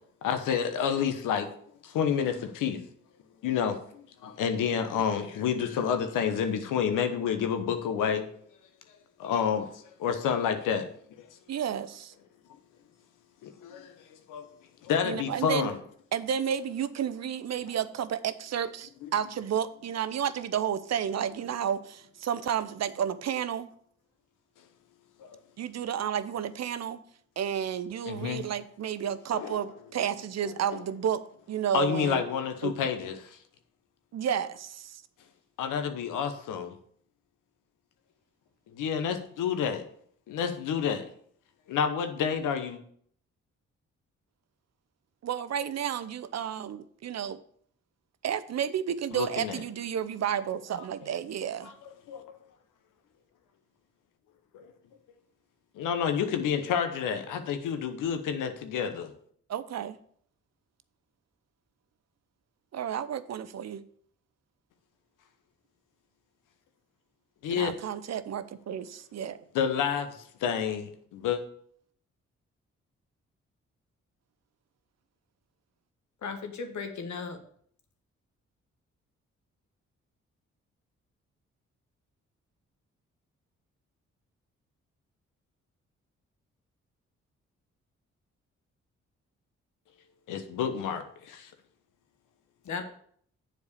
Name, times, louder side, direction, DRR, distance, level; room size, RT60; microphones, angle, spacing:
voice 1, 0.2-1.5 1.8-2.8 3.4-8.2 9.2-10.9 11.2-11.3 13.4-14.5 14.8-15.8 19.0-19.1 25.2-25.4 28.1-28.5 29.3-29.6 30.7-30.8 31.7-33.4 35.6-36.7 38.7-39.8 40.3-41.0 41.7-42.8 49.1-49.6 51.6-51.7 52.1-52.2 54.5-54.7 55.8-59.1 67.4-67.7 69.5-71.4 90.3-91.5, left 7 dB, 85° left, 0.9 m, -29 dB
voice 2, 11.5-12.1 15.0-15.7 16.1-23.7 25.6-27.0 27.4-31.2 31.5-32.2 32.6-32.7 34.1-35.0 45.2-47.4 48.2-51.7 59.5-60.0 62.7-63.8 67.5-69.4, right 9 dB, 55° right, 0.6 m, -31 dB
voice 3, 76.2-77.4 92.6-92.8, left 5 dB, 65° left, 1.3 m, -36 dB
7.1 x 4.5 x 6.5 m
supercardioid pair, 45°, 31 cm